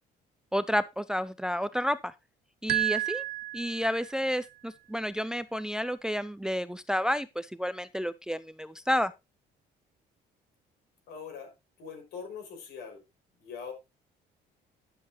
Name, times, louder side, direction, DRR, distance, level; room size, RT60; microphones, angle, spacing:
voice 1, 0.5-2.1 2.6-3.2 3.5-9.1, equal, 5° right, 0.5 m, -30 dB
sound 1, 2.7-4.3, right 17 dB, 65° right, 0.5 m, -31 dB
voice 2, 11.1-11.5 11.8-13.0 13.4-13.7, left 6 dB, 75° left, 5.8 m, -42 dB
12.0 x 7.6 x 2.9 m
cardioid pair, 110°, 17 cm